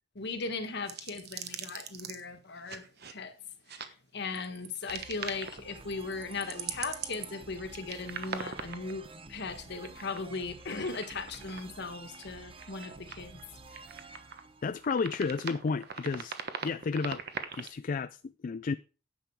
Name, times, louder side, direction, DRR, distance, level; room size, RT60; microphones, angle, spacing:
voice 1, 0.1-3.4 3.7-13.4, left 4 dB, 60° left, 1.5 m, -38 dB
sound 1, 0.9-2.2 2.7-3.1 3.7-3.9 4.3-5.6 5.9-9.1 9.7-10.3 10.6-11.6 12.1-12.3 12.6-13.4 13.7-14.5 14.8-17.7, right 7 dB, 55° right, 1.2 m, -41 dB
sound 2, 4.9-15.5, right 3 dB, 30° right, 0.9 m, -50 dB
voice 2, 14.6-16.4 16.6-17.2 17.5-18.7, left 4 dB, 45° left, 0.4 m, -32 dB
10.0 x 7.6 x 4.7 m
head